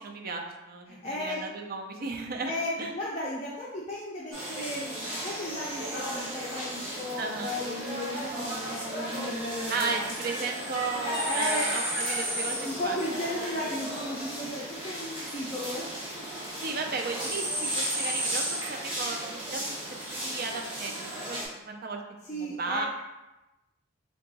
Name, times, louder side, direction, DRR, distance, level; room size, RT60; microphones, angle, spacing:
voice 1, 0.0-2.9 7.2-7.6 9.7-13.0 16.6-19.8 20.1-22.0 22.3-22.9, right 4 dB, 45° right, 3 dB, 0.4 m, -35 dB
voice 2, 0.9-1.4 2.4-9.9 11.2-11.7 12.6-15.9 16.2-16.8 22.2-22.9, left 1 dB, 30° left, -6 dB, 0.5 m, -35 dB
city town Havana earlymorning balcony, 4.3-21.4, right 1 dB, 25° right, 1.1 m, -34 dB
3.7 x 2.3 x 3.9 m, 1.0 s
head